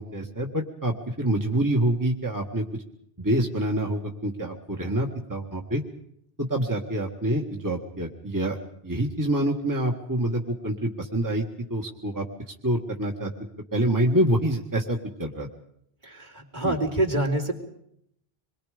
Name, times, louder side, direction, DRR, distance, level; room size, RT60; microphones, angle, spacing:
voice 1, 0.0-2.8 3.2-5.8 6.4-8.6 8.8-11.4 11.7-12.2 12.6-13.3 13.7-15.5 16.6-16.8, right 1 dB, 20° right, 1 dB, 1.9 m, -26 dB
voice 2, 16.0-17.5, right 1 dB, 45° right, 4 dB, 4.0 m, -26 dB
27.0 x 23.0 x 5.2 m, 0.72 s
omnidirectional pair, 1.1 m